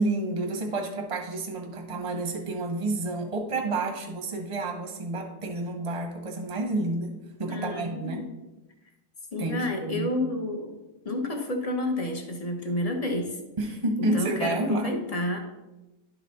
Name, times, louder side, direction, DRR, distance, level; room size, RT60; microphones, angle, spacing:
voice 1, 0.0-8.3 9.4-10.1 13.6-14.9, right 2 dB, 25° right, 2 dB, 0.9 m, -29 dB
voice 2, 7.4-8.3 9.3-10.7 11.0-13.4 14.1-15.4, left 1 dB, 30° left, 3 dB, 0.7 m, -30 dB
11.0 x 4.1 x 4.1 m, 1.0 s
omnidirectional pair, 1.8 m